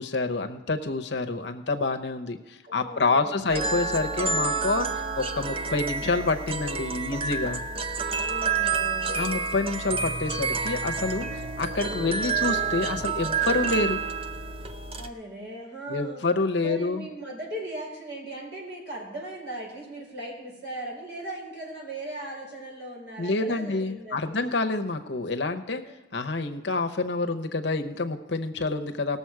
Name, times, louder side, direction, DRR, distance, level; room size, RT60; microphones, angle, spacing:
voice 1, 0.0-7.6 9.1-14.0 15.9-17.1 23.2-25.8 26.1-29.2, left 3 dB, 65° left, 6 dB, 0.8 m, -28 dB
voice 2, 2.6-3.4 5.7-6.0 8.1-9.2 11.9-12.2 15.0-16.2 16.6-24.4 25.8-25.9, right 1 dB, 65° right, -3 dB, 4.7 m, -38 dB
sound 1, 3.5-15.1, right 5 dB, 30° right, 0.5 m, -29 dB
18.5 x 7.1 x 4.7 m, 1.1 s
head